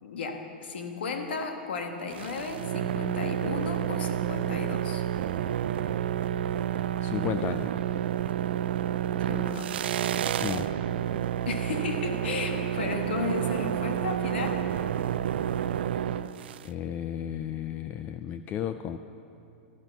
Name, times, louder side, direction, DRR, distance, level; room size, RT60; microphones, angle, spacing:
voice 1, 0.0-5.0 9.2-9.7 11.5-14.6, left 4 dB, 80° left, 5 dB, 1.4 m, -34 dB
sound 1, 2.1-16.7, right 10 dB, 75° right, 0.4 m, -30 dB
voice 2, 7.0-7.7 10.4-10.7 16.6-19.0, left 10 dB, 30° left, 9 dB, 0.4 m, -33 dB
12.5 x 9.7 x 6.0 m, 2.6 s
hypercardioid pair, 130°, 6 cm